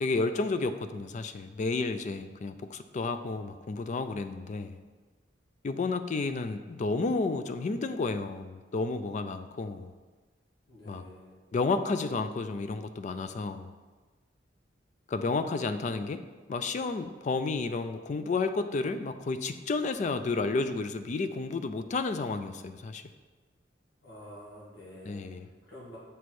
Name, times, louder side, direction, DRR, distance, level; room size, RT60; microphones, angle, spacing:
voice 1, 0.0-4.8 5.6-9.9 10.9-11.0 11.5-13.7 15.1-16.2 16.5-23.0 25.1-25.5, left 3 dB, 40° left, 10 dB, 0.4 m, -31 dB
voice 2, 10.7-11.4 24.0-25.2 25.6-26.0, equal, 80° left, -7 dB, 1.9 m, -48 dB
6.8 x 4.3 x 4.7 m, 1.3 s
head